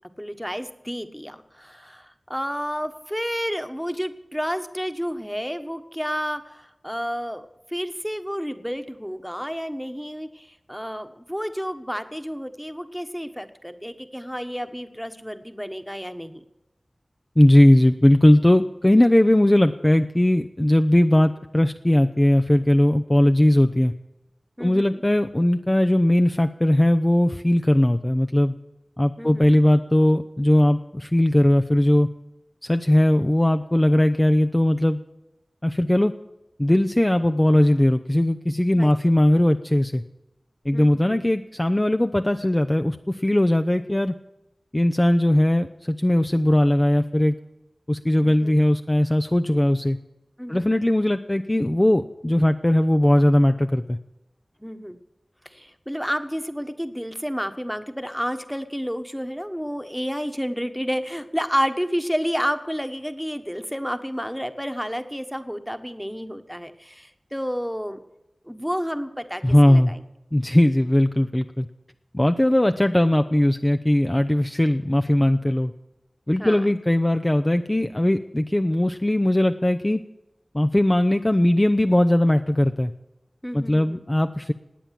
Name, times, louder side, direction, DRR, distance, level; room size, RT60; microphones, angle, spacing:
voice 1, 0.2-7.4 7.7-16.4 24.6-25.0 29.2-29.5 38.7-39.1 40.7-41.2 48.2-48.5 50.4-50.7 54.6-55.0 55.4-68.0 68.4-70.0 76.4-76.6 83.4-84.0, equal, ahead, 9 dB, 1.3 m, -30 dB
voice 2, 17.4-23.9 24.6-28.5 29.0-32.1 32.6-35.0 35.6-36.1 36.6-40.0 40.7-44.1 44.7-47.3 47.9-50.0 50.5-54.0 69.4-69.9 70.3-71.7 72.1-75.7 76.3-80.0 80.5-82.9 83.5-84.5, left 1 dB, 25° left, 7 dB, 0.6 m, -19 dB
18.5 x 8.8 x 7.6 m, 0.94 s
wide cardioid pair, 50°, 0 cm